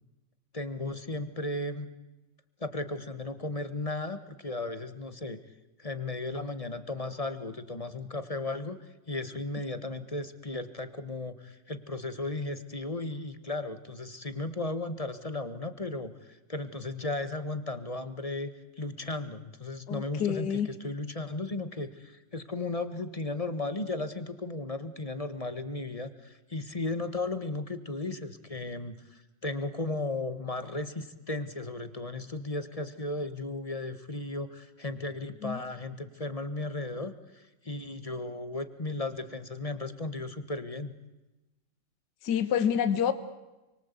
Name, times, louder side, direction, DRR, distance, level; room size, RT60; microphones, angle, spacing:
voice 1, 0.5-1.9 2.6-5.4 5.8-8.8 9.1-40.9, left 2 dB, 20° left, 10 dB, 1.4 m, -35 dB
voice 2, 19.9-20.7 35.4-35.6 42.2-43.1, left 8 dB, 65° left, 10 dB, 1.8 m, -27 dB
29.0 x 23.0 x 8.3 m, 1.0 s
omnidirectional pair, 2.0 m